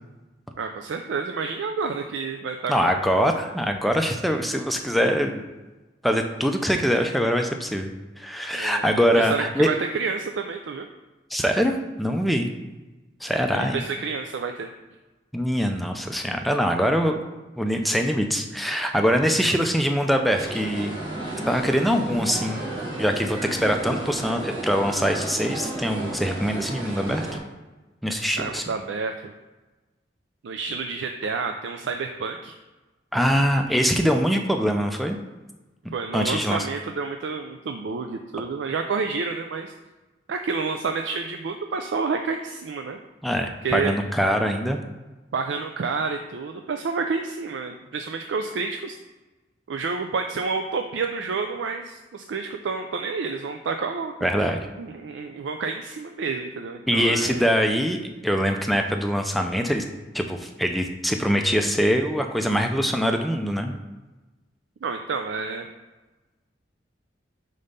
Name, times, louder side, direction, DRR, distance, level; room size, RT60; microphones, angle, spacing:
voice 1, 0.6-3.0 8.5-8.8 9.1-10.9 13.5-14.7 19.5-19.6 28.4-29.3 30.4-32.5 35.9-39.7 40.3-43.0 43.6-43.9 45.3-49.0 49.7-54.5 54.8-57.5 64.8-65.7, right 4 dB, 75° right, 5 dB, 0.4 m, -29 dB
voice 2, 2.7-5.4 6.0-9.7 11.3-12.5 13.2-13.8 15.3-17.1 17.6-20.9 21.5-22.6 23.0-27.3 28.0-28.6 33.1-35.2 36.1-36.6 43.2-44.8 54.2-54.7 56.9-58.0 58.2-59.8 60.1-63.7, equal, ahead, 4 dB, 0.4 m, -23 dB
sound 1, 20.3-27.4, right 2 dB, 30° right, 1.9 m, -32 dB
5.3 x 3.9 x 5.4 m, 1.2 s
head